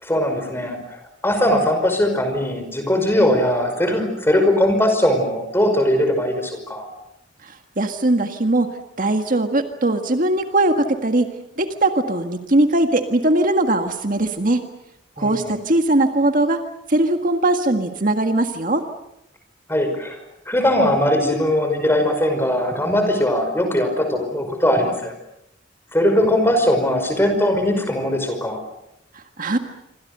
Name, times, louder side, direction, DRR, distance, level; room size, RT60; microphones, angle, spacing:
voice 1, 0.0-6.9 15.2-15.6 19.7-20.2 20.5-25.1 25.9-28.6, left 1 dB, 15° left, 6 dB, 5.3 m, -20 dB
voice 2, 7.4-14.6 15.2-16.6 16.9-18.8 29.1-29.6, right 2 dB, 45° right, 6 dB, 1.7 m, -20 dB
27.5 x 25.5 x 6.8 m, 0.84 s
head